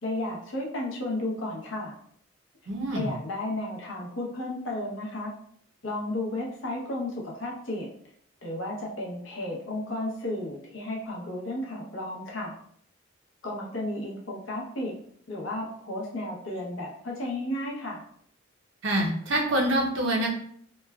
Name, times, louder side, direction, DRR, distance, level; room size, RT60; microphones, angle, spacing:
voice 1, 0.0-1.9 2.9-5.3 5.8-7.9 8.4-12.5 13.4-14.9 15.3-18.0, left 1 dB, 75° left, -2 dB, 0.8 m, -33 dB
voice 2, 2.7-3.1 18.8-20.3, right 1 dB, 70° right, 0 dB, 0.6 m, -26 dB
3.1 x 2.2 x 2.2 m, 0.65 s
head